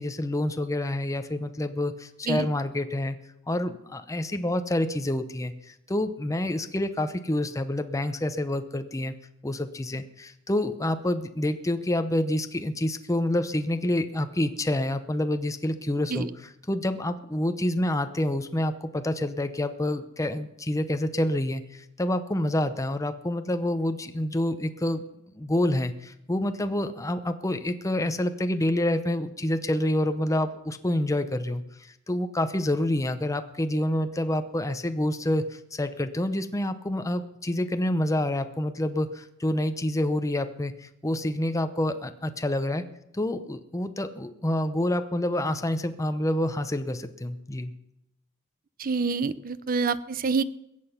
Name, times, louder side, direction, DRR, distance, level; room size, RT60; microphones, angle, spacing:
voice 1, 0.0-3.2 3.5-9.1 9.4-25.0 25.4-31.6 32.1-42.8 43.1-47.7, left 1 dB, 15° left, 9 dB, 0.7 m, -27 dB
voice 2, 48.8-50.4, right 4 dB, 45° right, 16 dB, 0.6 m, -27 dB
21.5 x 7.9 x 5.6 m, 0.81 s
head